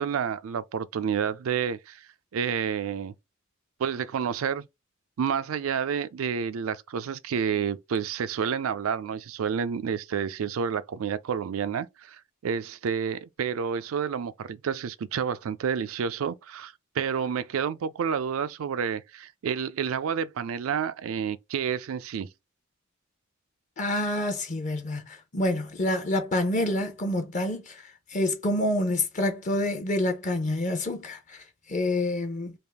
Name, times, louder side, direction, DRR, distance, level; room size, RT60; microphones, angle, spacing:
voice 1, 0.0-2.1 2.3-3.1 3.8-4.7 5.2-22.3, right 7 dB, 85° right, 0.4 m, -29 dB
voice 2, 23.8-32.6, left 1 dB, 35° left, 0.6 m, -28 dB
3.4 x 2.4 x 3.4 m
head